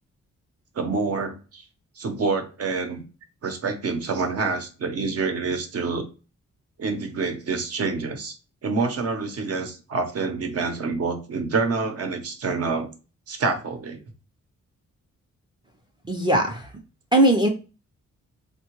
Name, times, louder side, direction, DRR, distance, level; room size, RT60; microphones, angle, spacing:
voice 1, 0.8-1.6 2.0-3.0 3.4-6.1 6.8-8.4 8.6-12.9 13.3-14.0, right 4 dB, 55° right, 0.7 m, -27 dB
voice 2, 16.1-16.7 17.1-17.5, right 1 dB, 15° right, 0.4 m, -19 dB
3.5 x 2.2 x 2.9 m
wide cardioid pair, 120°, 30 cm